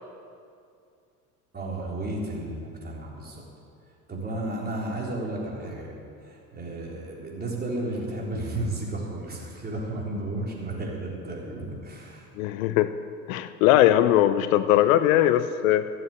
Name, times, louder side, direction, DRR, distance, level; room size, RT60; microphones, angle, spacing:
voice 1, 1.5-3.4 3.8-5.9 6.2-12.3, right 1 dB, 20° right, -3 dB, 3.9 m, -33 dB
voice 2, 12.4-13.0 13.3-15.9, left 12 dB, 65° left, 12 dB, 0.7 m, -20 dB
13.5 x 7.7 x 8.2 m, 2.4 s
hypercardioid pair, 75°, 44 cm